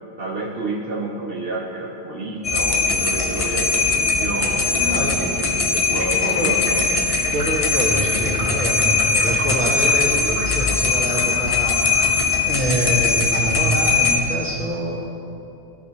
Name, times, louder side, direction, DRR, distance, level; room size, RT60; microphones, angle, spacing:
voice 1, 0.2-5.6 5.9-6.9, right 2 dB, 65° right, -3 dB, 1.1 m, -30 dB
sound 1, 2.4-14.2, left 4 dB, 40° left, 0.6 m, -20 dB
voice 2, 4.8-5.8 6.1-6.6 7.3-12.1 12.4-15.1, right 1 dB, 10° right, -6 dB, 1.5 m, -26 dB
sound 2, 5.9-12.4, right 3 dB, 45° right, 0.5 m, -35 dB
13.5 x 4.7 x 2.9 m, 2.6 s
omnidirectional pair, 1.0 m